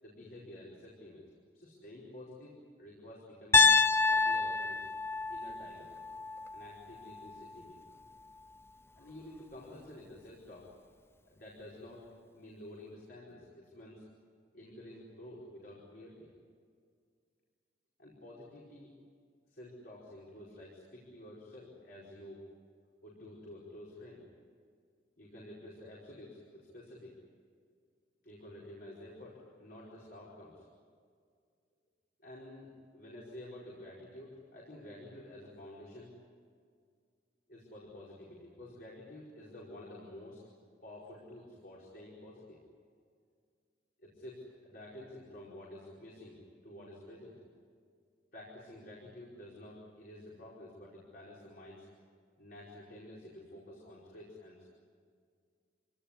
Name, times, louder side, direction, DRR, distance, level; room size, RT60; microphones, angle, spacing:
voice 1, 0.0-1.2 1.5-3.7 4.1-4.8 5.3-5.9 6.5-7.8 8.9-10.7 11.3-12.1 12.3-14.0 14.5-16.3 18.0-18.9 19.5-22.4 23.0-24.2 25.2-27.1 28.2-30.7 32.2-36.1 37.5-40.4 40.8-42.6 44.0-46.4 46.6-47.3 48.3-51.9 52.4-54.7, left 1 dB, 55° left, -4 dB, 5.0 m, -50 dB
Piano, 3.5-7.6, left 4 dB, 15° left, 0.6 m, -28 dB
25.5 x 18.5 x 9.9 m, 2.1 s
head